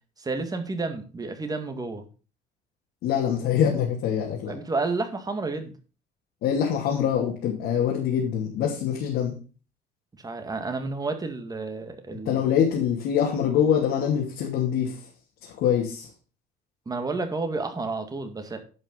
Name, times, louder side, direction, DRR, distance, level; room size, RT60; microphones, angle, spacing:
voice 1, 0.2-2.1 4.5-5.7 10.2-12.4 16.9-18.6, right 3 dB, 20° right, 7 dB, 2.0 m, -30 dB
voice 2, 3.0-4.5 6.4-9.4 12.1-15.1 15.4-16.1, left 8 dB, 80° left, -3 dB, 2.7 m, -24 dB
11.0 x 5.6 x 5.3 m, 0.37 s
cardioid pair, 110°, 17 cm